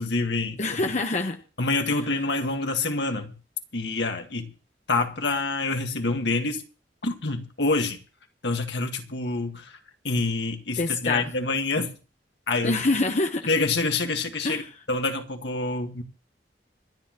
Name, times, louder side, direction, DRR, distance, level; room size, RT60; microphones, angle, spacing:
voice 1, 0.0-0.6 1.6-3.3 3.7-4.5 4.9-6.6 7.0-8.0 8.4-9.8 10.0-11.9 12.5-12.8 13.5-14.6 14.9-16.0, left 3 dB, 75° left, 1.8 m, -26 dB
voice 2, 0.6-1.4 1.9-2.0 10.8-11.3 12.6-13.5 14.4-14.7, left 2 dB, 40° left, 1.0 m, -26 dB
26.0 x 10.0 x 3.0 m
head